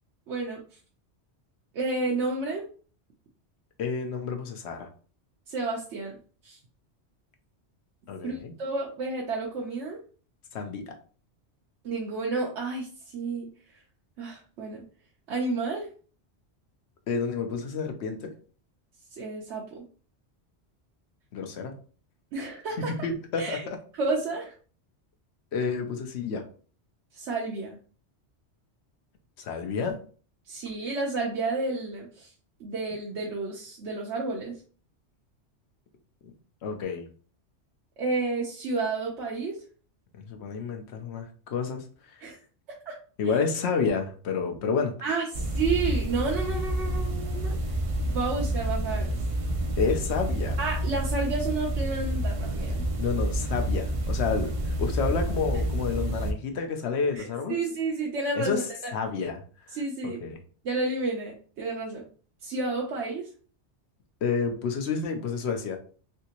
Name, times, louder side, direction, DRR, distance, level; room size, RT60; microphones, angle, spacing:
voice 1, 0.3-0.6 1.7-2.6 5.5-6.1 6.4-6.6 8.2-10.0 11.8-12.9 13.1-13.5 14.2-14.8 15.3-15.9 19.1-19.8 22.3-23.1 23.4-23.6 23.9-24.5 27.1-27.8 30.5-32.3 32.6-34.6 38.0-39.6 42.2-42.4 42.9-43.0 43.2-43.3 45.0-47.6 48.1-49.2 50.6-52.8 57.1-58.9 59.7-60.2 60.6-62.1 62.4-63.3, right 3 dB, 80° right, -2 dB, 1.0 m, -31 dB
voice 2, 3.8-4.9 8.1-8.5 10.5-10.8 17.1-18.3 21.3-21.7 22.8-23.8 25.5-26.4 29.4-30.0 36.6-37.1 40.3-41.9 43.2-45.0 49.8-50.6 53.0-57.6 58.4-58.6 58.9-59.4 60.0-60.4 64.2-65.8, left 5 dB, 70° left, 5 dB, 0.9 m, -29 dB
sound 1, 45.3-56.3, right 1 dB, 55° right, 0.3 m, -29 dB
3.3 x 2.8 x 2.8 m, 0.40 s
omnidirectional pair, 1.2 m